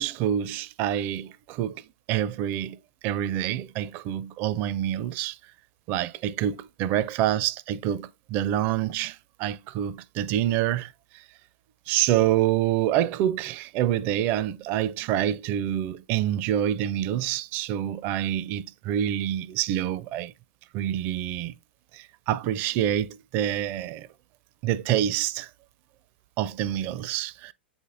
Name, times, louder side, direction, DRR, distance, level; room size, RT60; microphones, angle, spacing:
voice 1, 0.0-1.8 2.1-2.8 3.0-5.4 5.9-10.9 11.9-20.3 20.7-21.5 21.9-23.1 23.3-24.1 24.6-25.5 26.4-27.5, right 11 dB, 35° right, 0.4 m, -27 dB
8.1 x 4.4 x 3.4 m
figure-of-eight pair, 95°, 6 cm